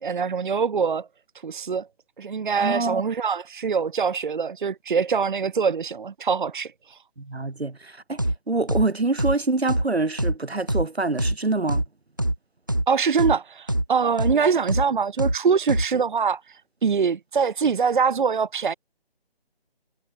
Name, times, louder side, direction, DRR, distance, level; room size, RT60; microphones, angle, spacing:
voice 1, 0.0-1.1 1.4-1.9 2.2-7.0 12.9-18.7, right 6 dB, 50° right, 1.2 m, -24 dB
voice 2, 2.6-3.0 7.2-8.2 8.5-11.8, right 3 dB, 90° right, 3.6 m, -25 dB
sound 1, 8.2-8.4 8.7-8.9 9.2-9.4 9.7-9.9 10.2-10.4 10.7-10.9 11.2-11.4 11.7-11.9 12.2-12.4 12.7-12.9 13.2-13.4 13.7-13.9 14.2-14.4 14.7-14.9 15.2-15.4 15.7-15.9, right 1 dB, 20° right, 0.4 m, -23 dB
figure-of-eight pair, 160°, 31 cm